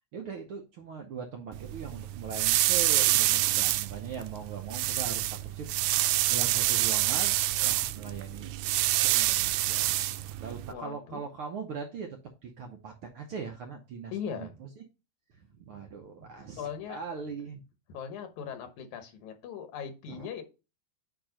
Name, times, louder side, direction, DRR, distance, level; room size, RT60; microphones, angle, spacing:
voice 1, 0.1-8.5 8.9-10.1 10.4-14.7 15.3-17.6 20.1-20.3, right 5 dB, 65° right, 3 dB, 1.4 m, -41 dB
sound 1, 1.5-10.7, right 15 dB, 90° right, 2.0 m, -27 dB
voice 2, 10.7-11.3 14.1-14.5 16.6-17.0 17.9-20.4, left 7 dB, 85° left, 7 dB, 2.6 m, -39 dB
8.9 x 3.0 x 5.0 m, 0.29 s
omnidirectional pair, 3.3 m